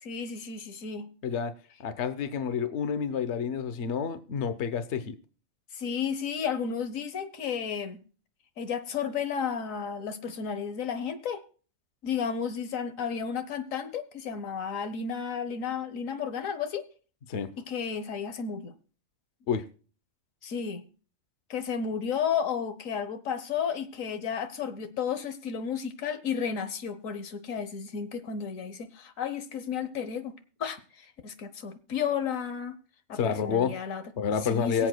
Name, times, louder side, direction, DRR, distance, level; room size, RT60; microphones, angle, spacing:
voice 1, 0.0-1.1 5.7-8.0 8.6-11.4 12.0-16.8 17.7-18.7 20.4-20.9 21.5-30.3 30.6-32.8 33.1-34.0 34.4-34.9, left 7 dB, 90° left, 11 dB, 1.4 m, -32 dB
voice 2, 1.2-1.5 1.8-5.2 17.3-17.5 19.5-19.6 33.1-33.7 34.2-34.9, left 7 dB, 60° left, 11 dB, 1.1 m, -29 dB
23.0 x 8.0 x 2.3 m, 0.38 s
omnidirectional pair, 1.3 m